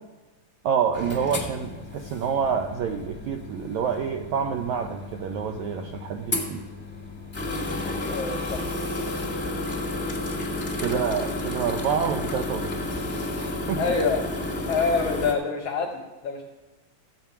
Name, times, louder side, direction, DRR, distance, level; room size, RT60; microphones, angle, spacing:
voice 1, 0.6-6.6 10.8-12.8 13.7-13.9, right 7 dB, 80° right, 4 dB, 1.7 m, -27 dB
sound 1, 0.9-15.3, left 2 dB, 5° left, 0.8 m, -32 dB
voice 2, 8.1-8.6 10.9-11.3 13.8-14.2 14.7-16.4, left 4 dB, 70° left, 1 dB, 1.5 m, -26 dB
14.5 x 8.0 x 5.6 m, 1.2 s
omnidirectional pair, 3.9 m